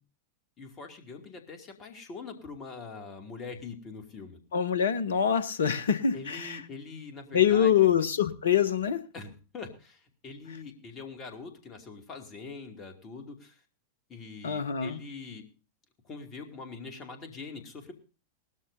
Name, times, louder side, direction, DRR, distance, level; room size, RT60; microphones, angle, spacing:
voice 1, 0.6-4.4 6.1-7.7 9.1-13.6 14.1-15.4 16.0-17.9, left 4 dB, 30° left, 2.4 m, -43 dB
voice 2, 4.5-6.6 7.3-9.0 14.4-15.0, left 8 dB, 65° left, 0.9 m, -25 dB
19.0 x 13.0 x 2.7 m
figure-of-eight pair, 90°, 0 cm